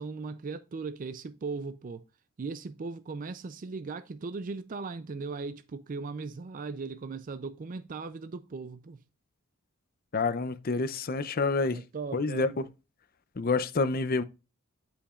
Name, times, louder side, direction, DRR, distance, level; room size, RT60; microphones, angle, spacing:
voice 1, 0.0-2.0 2.4-9.0 11.7-12.5, right 4 dB, 40° right, 0.4 m, -38 dB
voice 2, 10.1-11.8 12.1-12.6 13.4-14.2, left 3 dB, 40° left, 0.6 m, -28 dB
11.5 x 5.1 x 2.4 m
head